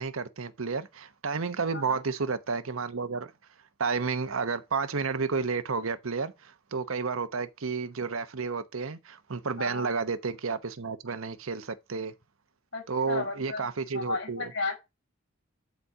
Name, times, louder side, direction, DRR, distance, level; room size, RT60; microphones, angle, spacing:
voice 1, 0.0-3.3 3.8-12.1 12.9-14.5, right 4 dB, 80° right, 0.9 m, -31 dB
voice 2, 9.6-9.9 12.7-14.7, left 3 dB, 70° left, 6.2 m, -34 dB
10.5 x 4.2 x 4.7 m
head